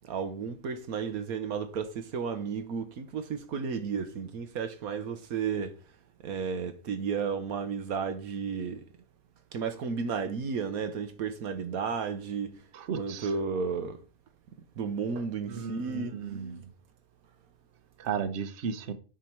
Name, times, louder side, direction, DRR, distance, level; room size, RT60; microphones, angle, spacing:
voice 1, 0.0-5.7 6.2-8.8 9.5-12.6 13.0-14.0 14.8-16.2, right 6 dB, 75° right, 1.3 m, -33 dB
voice 2, 12.7-13.3 15.5-16.6 18.0-18.9, right 6 dB, 55° right, 1.1 m, -34 dB
9.3 x 6.0 x 4.5 m
omnidirectional pair, 1.6 m